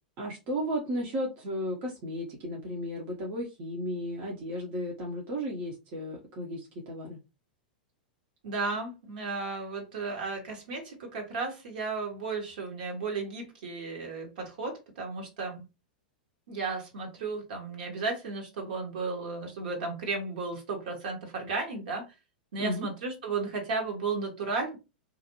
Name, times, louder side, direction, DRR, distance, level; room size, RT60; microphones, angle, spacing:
voice 1, 0.2-7.2 22.6-22.9, equal, 45° right, 0.8 m, -34 dB
voice 2, 8.4-15.7 16.5-22.1 22.5-24.8, right 4 dB, 65° right, 1.2 m, -34 dB
2.5 x 2.4 x 2.8 m
figure-of-eight pair, 95°, 5 cm